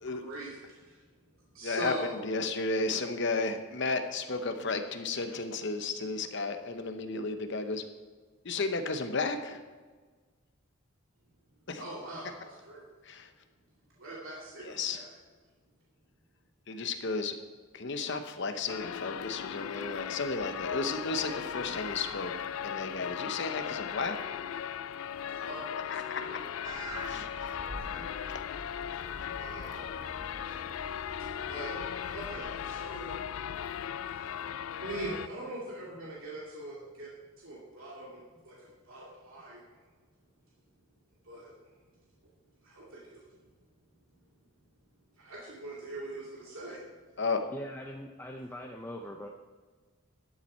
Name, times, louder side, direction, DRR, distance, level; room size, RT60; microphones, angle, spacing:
voice 1, 0.1-1.0 1.5-2.2 11.8-12.8 14.0-15.1 23.2-23.6 25.4-25.9 26.2-26.4 27.6-28.0 29.3-29.9 31.5-31.8 32.1-33.3 34.1-34.3 34.8-37.1 37.4-39.6 41.2-41.5 42.6-43.2 45.2-46.8, right 1 dB, 70° right, -6 dB, 2.3 m, -42 dB
voice 2, 1.6-7.8 8.4-9.6 11.7-11.9 13.1-13.3 14.6-15.0 16.7-17.4 17.7-22.3 22.6-24.2 25.9-26.0 27.0-27.6 47.2-47.4, left 3 dB, 55° left, 7 dB, 0.8 m, -33 dB
sound 1, 18.7-35.3, left 9 dB, 75° left, 0.3 m, -38 dB
sound 2, 26.6-33.2, equal, 20° right, 1.6 m, -46 dB
voice 3, 47.5-49.3, equal, 10° left, 2 dB, 0.5 m, -42 dB
12.5 x 7.4 x 4.3 m, 1.4 s
head